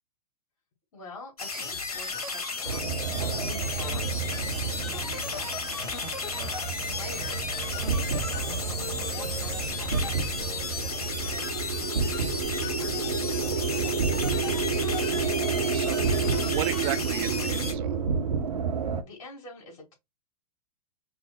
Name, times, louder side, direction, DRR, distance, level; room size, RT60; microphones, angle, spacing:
voice 1, 0.9-5.7 6.9-10.2 10.8-11.8 12.1-14.3 19.0-19.9, left 2 dB, 55° left, 2.6 m, -47 dB
sound 1, 1.4-17.7, left 4 dB, 75° left, 1.4 m, -34 dB
sound 2, 2.6-19.0, right 5 dB, 90° right, 0.8 m, -30 dB
voice 2, 15.3-17.9, right 15 dB, 40° right, 0.5 m, -35 dB
5.3 x 2.0 x 4.3 m
hypercardioid pair, 110°, 19 cm